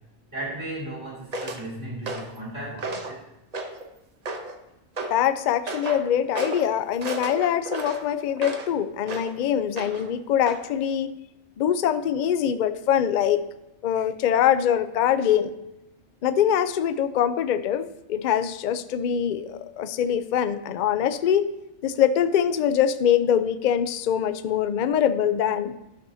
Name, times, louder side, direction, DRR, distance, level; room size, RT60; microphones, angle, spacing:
voice 1, 0.3-3.2, right 1 dB, 75° right, -5 dB, 2.6 m, -35 dB
sound 1, 1.3-1.6 2.1-2.4 2.8-3.2 3.5-3.9 4.3-4.6 5.0-5.2 5.7-6.0 6.3-6.7 7.0-8.7 9.1-9.3 9.8-10.1 10.5-10.6, right 2 dB, 40° right, 0.7 m, -33 dB
voice 2, 5.1-11.1 11.6-13.4 13.8-15.5 16.2-21.4 21.8-25.7, left 9 dB, 70° left, 11 dB, 0.4 m, -23 dB
12.5 x 6.2 x 2.7 m, 0.91 s
omnidirectional pair, 1.3 m